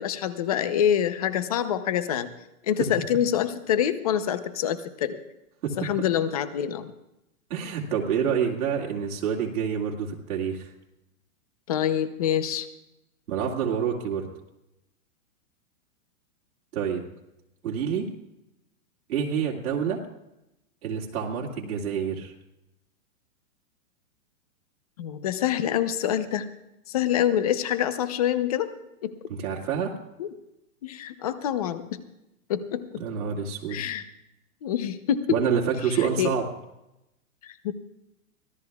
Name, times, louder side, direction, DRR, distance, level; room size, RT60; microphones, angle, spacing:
voice 1, 0.0-2.3 2.6-5.2 5.8-6.9 11.7-12.7 25.0-26.5 26.9-28.7 29.0-29.1 30.2-30.3 30.8-32.0 32.5-32.8 33.7-34.0 34.6-35.4 35.9-36.3 37.4-37.7, left 10 dB, 25° left, 12 dB, 0.6 m, -26 dB
voice 2, 7.5-10.7 13.3-14.3 16.7-17.0 17.6-18.1 19.1-20.0 20.8-22.3 29.3-30.0 33.0-33.9 35.3-36.5, right 7 dB, 80° right, -2 dB, 2.4 m, -27 dB
24.5 x 16.0 x 2.3 m, 0.90 s
hypercardioid pair, 170°, 42 cm